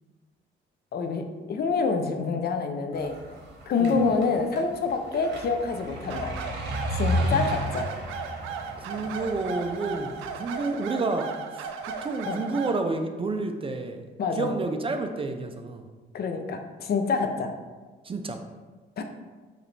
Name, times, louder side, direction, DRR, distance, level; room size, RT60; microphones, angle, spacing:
voice 1, 0.9-3.2 3.7-6.4 6.9-7.9 12.3-12.4 14.2-14.5 16.1-17.5 19.0-19.1, left 4 dB, 55° left, 6 dB, 0.5 m, -27 dB
sound 1, 2.9-10.4, equal, 60° right, 1.0 m, -33 dB
sound 2, 6.1-12.8, right 6 dB, 90° right, 0.4 m, -36 dB
voice 2, 8.8-11.7 12.0-14.1 14.4-15.8 18.0-18.4, right 3 dB, 30° right, 6 dB, 0.4 m, -30 dB
4.8 x 3.1 x 3.2 m, 1.3 s
cardioid pair, 90°, 20 cm